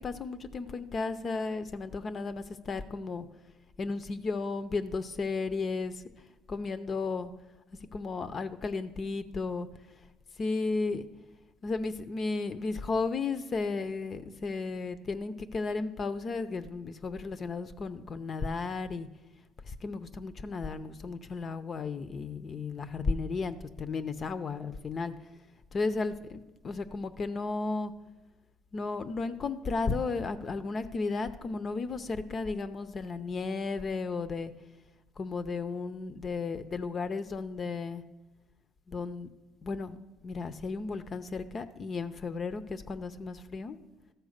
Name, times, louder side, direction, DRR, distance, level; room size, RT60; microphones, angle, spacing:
voice 1, 0.0-3.3 3.8-6.0 6.5-7.3 7.9-9.7 10.4-11.0 11.6-19.1 19.7-25.1 25.7-27.9 28.7-34.5 35.2-38.0 38.9-39.3 39.6-40.0 40.2-43.8, left 4 dB, 35° left, 11 dB, 0.5 m, -34 dB
13.0 x 4.5 x 6.5 m, 1.1 s
cardioid pair, 120°, 0 cm